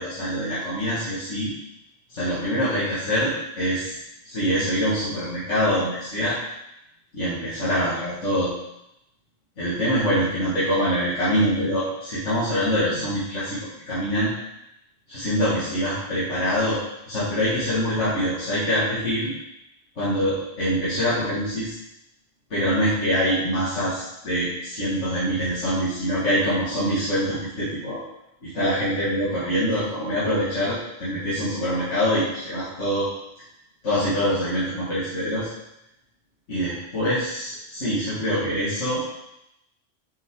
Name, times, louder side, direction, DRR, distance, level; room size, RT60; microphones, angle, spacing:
voice 1, 0.0-1.5 2.1-3.9 4.2-6.4 7.1-8.5 9.6-13.6 13.8-14.3 15.1-16.8 17.1-19.3 20.0-21.7 22.5-28.0 28.4-33.1 33.8-35.5 36.5-39.1, equal, 80° left, -11 dB, 2.4 m, -24 dB
7.1 x 5.7 x 3.8 m, 0.84 s
omnidirectional pair, 1.2 m